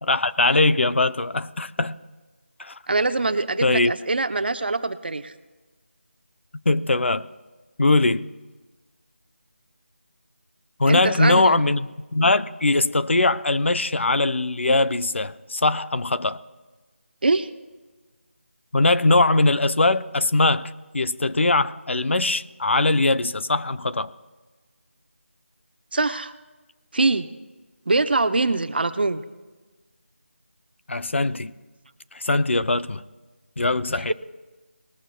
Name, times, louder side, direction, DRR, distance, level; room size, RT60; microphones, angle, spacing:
voice 1, 0.0-2.0 2.6-2.8 3.6-3.9 6.7-7.3 7.8-8.3 10.8-16.4 18.7-24.1 30.9-31.5 32.1-33.0 33.6-34.1, left 2 dB, 65° left, 0.6 m, -21 dB
voice 2, 2.9-5.3 10.9-11.6 17.2-17.5 25.9-26.3 26.9-27.3 27.9-29.2 34.0-34.1, right 3 dB, 50° right, 0.7 m, -23 dB
20.0 x 14.0 x 2.3 m
figure-of-eight pair, 175°, 7 cm